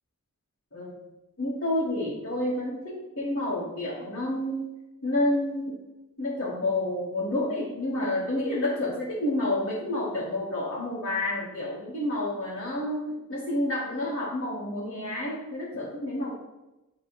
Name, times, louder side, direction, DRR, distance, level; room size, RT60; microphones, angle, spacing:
voice 1, 1.4-4.6 5.0-5.7 6.2-16.3, left 1 dB, 55° left, -9 dB, 2.2 m, -29 dB
10.0 x 4.0 x 3.4 m, 0.98 s
head